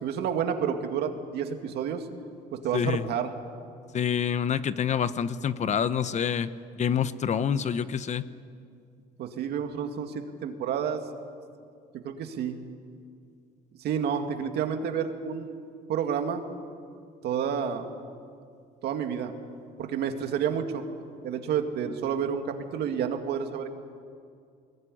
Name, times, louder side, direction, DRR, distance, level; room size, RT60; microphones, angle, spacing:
voice 1, 0.0-2.0 2.5-3.3 9.2-11.0 12.0-12.6 13.8-15.6 15.9-16.4 17.2-17.9 18.8-19.3 19.8-20.8 21.2-23.7, right 7 dB, 75° right, 5 dB, 2.3 m, -30 dB
voice 2, 2.7-3.0 3.9-8.2, left 8 dB, 45° left, 14 dB, 0.9 m, -27 dB
22.0 x 20.5 x 10.0 m, 2.3 s
cardioid pair, 110°, 17 cm